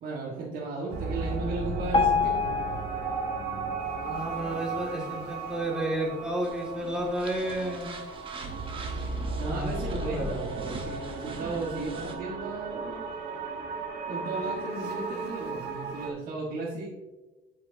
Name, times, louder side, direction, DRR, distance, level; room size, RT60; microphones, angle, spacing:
voice 1, 0.0-2.6 9.4-13.0 14.1-16.9, right 3 dB, 60° right, -5 dB, 1.5 m, -35 dB
sound 1, 0.9-16.1, right 4 dB, 75° right, 1.1 m, -35 dB
Piano, 1.9-5.0 5.6-5.7 6.0-6.1 6.8-6.9 7.5-7.6, left 5 dB, 30° left, 1.3 m, -29 dB
voice 2, 4.0-8.0 9.4-9.7 10.1-10.4, right 1 dB, 5° right, -2 dB, 1.9 m, -32 dB
sound 2, 6.4-12.1, right 2 dB, 30° right, 1.1 m, -42 dB
8.2 x 5.7 x 2.7 m, 1.2 s
cardioid pair, 110°, 17 cm